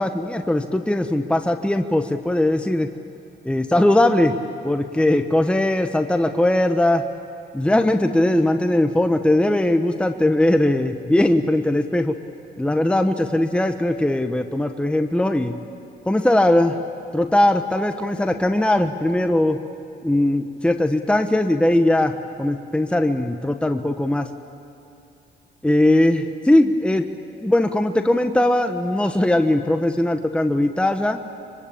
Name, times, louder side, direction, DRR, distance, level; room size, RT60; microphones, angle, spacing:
voice 1, 0.0-2.9 3.4-4.3 4.6-7.0 7.5-12.1 12.6-15.5 16.1-16.8 17.1-19.6 20.0-24.3 25.6-27.1 27.4-31.2, left 1 dB, 5° left, 6 dB, 1.1 m, -19 dB
24.5 x 24.5 x 8.8 m, 2.8 s
cardioid pair, 90°, 20 cm